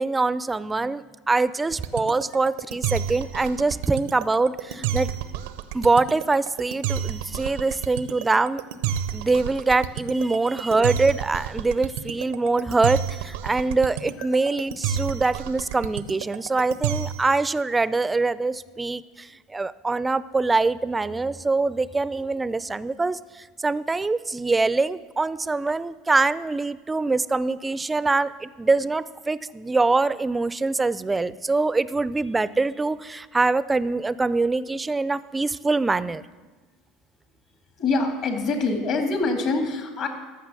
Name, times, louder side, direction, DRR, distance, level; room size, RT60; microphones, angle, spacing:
voice 1, 0.0-5.1 5.7-8.6 9.1-23.2 23.6-36.2, right 3 dB, 15° right, 17 dB, 0.4 m, -24 dB
sound 1, 1.7-17.4, right 9 dB, 80° right, 0.6 m, -29 dB
voice 2, 37.8-40.1, left 3 dB, 55° left, 4 dB, 2.3 m, -24 dB
14.0 x 5.8 x 6.2 m, 1.3 s
hypercardioid pair, 90°, 0 cm